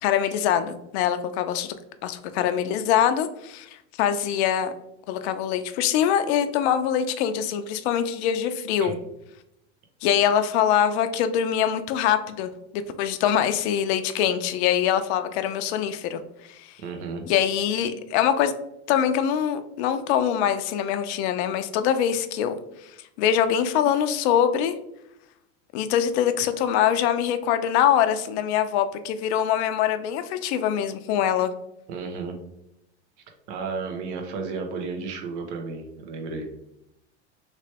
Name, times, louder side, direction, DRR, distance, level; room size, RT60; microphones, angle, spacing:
voice 1, 0.0-1.8 2.0-4.7 5.1-9.0 10.0-16.7 17.3-18.5 18.9-22.6 22.8-24.7 25.7-31.5, left 9 dB, 65° left, 10 dB, 0.5 m, -24 dB
voice 2, 16.8-17.3 31.9-32.4 33.5-36.5, right 4 dB, 65° right, 4 dB, 0.9 m, -33 dB
3.2 x 3.1 x 2.8 m, 0.81 s
hypercardioid pair, 105°, 36 cm